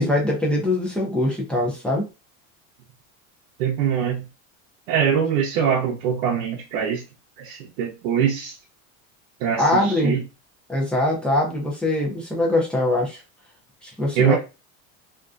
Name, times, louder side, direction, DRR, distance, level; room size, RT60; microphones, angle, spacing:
voice 1, 0.0-2.0 9.6-10.1 10.7-13.2 13.8-14.4, left 1 dB, 5° left, -2 dB, 0.4 m, -22 dB
voice 2, 3.6-4.3 4.9-7.0 7.4-8.6 9.4-10.2 14.2-14.4, right 8 dB, 90° right, -1 dB, 0.6 m, -23 dB
2.5 x 2.1 x 2.4 m, 0.29 s
cardioid pair, 155°, 39 cm